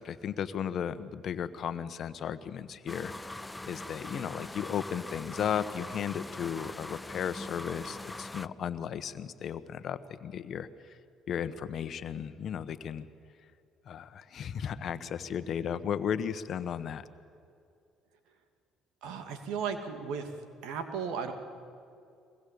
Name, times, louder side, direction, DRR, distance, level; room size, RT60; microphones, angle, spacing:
voice 1, 0.0-3.1 3.6-11.0 11.3-13.1 13.8-17.1, left 8 dB, 55° left, 12 dB, 1.2 m, -35 dB
sound 1, 2.9-8.5, left 2 dB, 10° left, 0.6 m, -42 dB
voice 2, 19.0-20.3 20.6-21.3, right 6 dB, 75° right, 7 dB, 2.6 m, -35 dB
23.5 x 20.5 x 8.6 m, 2.4 s
supercardioid pair, 70°, 0 cm